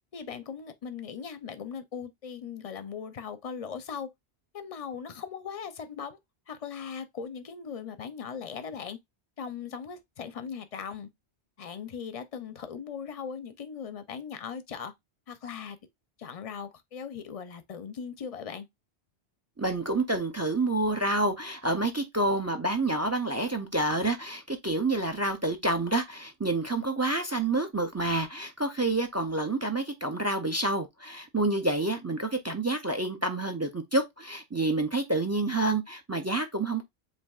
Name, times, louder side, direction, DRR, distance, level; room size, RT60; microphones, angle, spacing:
voice 1, 0.1-4.1 4.5-6.2 6.5-9.0 9.4-11.1 11.6-14.9 15.3-15.8 16.2-18.7, left 7 dB, 45° left, 0.5 m, -39 dB
voice 2, 19.6-36.8, right 2 dB, 25° right, 0.3 m, -28 dB
7.3 x 2.6 x 2.3 m
omnidirectional pair, 1.1 m